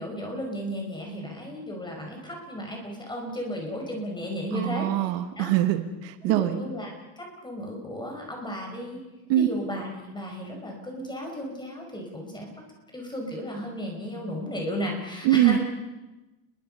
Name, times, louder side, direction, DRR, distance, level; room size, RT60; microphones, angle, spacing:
voice 1, 0.0-5.1 5.4-5.5 6.2-9.0 9.4-12.5 12.9-15.6, equal, 10° left, 1 dB, 5.4 m, -34 dB
voice 2, 4.5-6.6 9.3-9.5 15.2-15.6, right 13 dB, 60° right, 9 dB, 1.5 m, -23 dB
30.0 x 22.0 x 5.5 m, 1.1 s
cardioid pair, 150°, 49 cm